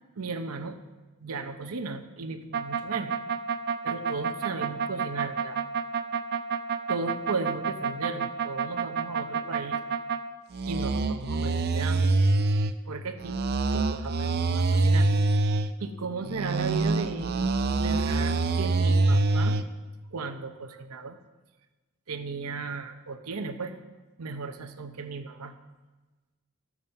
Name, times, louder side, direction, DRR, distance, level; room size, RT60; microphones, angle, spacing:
voice 1, 0.2-0.8 1.2-3.1 3.8-5.6 6.9-9.8 10.7-12.1 12.9-13.4 13.7-15.1 15.8-17.3 17.7-19.6 20.1-21.2 22.1-23.8 24.2-25.5, right 4 dB, 80° right, 7 dB, 0.8 m, -35 dB
sound 1, 2.5-10.2 10.5-12.7 13.2-15.7 16.2-19.6, right 3 dB, 45° right, 0.5 m, -26 dB
13.0 x 7.3 x 5.4 m, 1.2 s
head